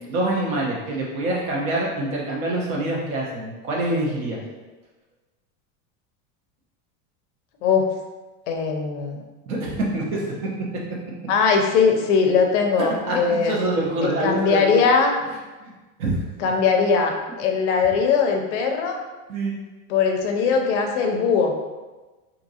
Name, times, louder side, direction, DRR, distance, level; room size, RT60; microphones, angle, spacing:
voice 1, 0.0-4.4 9.5-10.3 12.8-14.8 15.6-15.7 16.0-16.2 19.3-19.5, right 2 dB, 70° right, -3 dB, 1.1 m, -25 dB
voice 2, 8.5-9.2 11.3-13.6 14.0-15.1 16.4-19.0 19.9-21.6, left 5 dB, 55° left, 3 dB, 0.5 m, -20 dB
3.6 x 2.8 x 2.7 m, 1.2 s
supercardioid pair, 180°, 44 cm